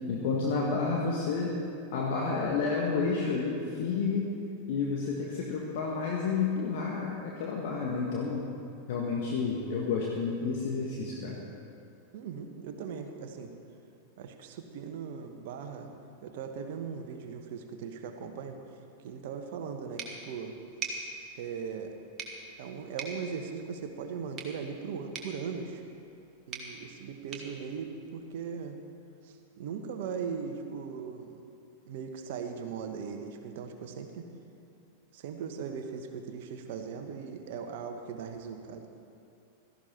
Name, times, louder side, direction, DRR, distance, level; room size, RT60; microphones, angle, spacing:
voice 1, 0.1-1.6 1.9-4.3 4.7-8.5 8.9-11.4, left 4 dB, 50° left, -2 dB, 1.6 m, -30 dB
voice 2, 12.1-13.5 14.2-15.9 16.2-18.6 19.0-20.5 21.3-21.9 22.6-25.8 26.5-28.8 29.2-31.4 31.8-34.3 35.1-38.9, right 6 dB, 50° right, 6 dB, 1.4 m, -39 dB
sound 1, 20.0-28.7, right 4 dB, 30° right, 1.9 m, -45 dB
16.5 x 14.0 x 4.5 m, 2.6 s
figure-of-eight pair, 90°, 0 cm